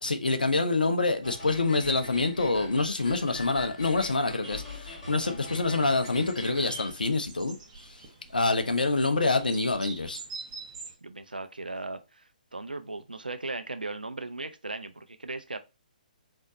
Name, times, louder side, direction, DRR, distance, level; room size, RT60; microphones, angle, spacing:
voice 1, 0.0-8.0 8.3-10.2, left 3 dB, 75° left, 0.8 m, -26 dB
sound 1, 1.2-6.9, left 3 dB, 35° left, 2.5 m, -43 dB
sound 2, 4.9-10.9, right 4 dB, 30° right, 1.4 m, -45 dB
voice 2, 11.0-12.2 12.5-15.6, right 3 dB, 80° right, 0.6 m, -37 dB
4.3 x 3.8 x 3.0 m
figure-of-eight pair, 130°, 5 cm